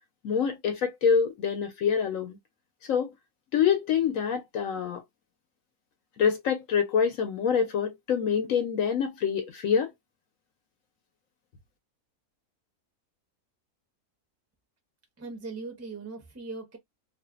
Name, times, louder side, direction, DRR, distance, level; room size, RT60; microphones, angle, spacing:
voice 1, 0.2-2.4 2.9-3.1 3.5-5.0 6.2-9.9, left 7 dB, 70° left, 0.9 m, -26 dB
voice 2, 15.2-16.8, right 3 dB, 15° right, 0.5 m, -39 dB
2.5 x 2.4 x 2.4 m
omnidirectional pair, 1.6 m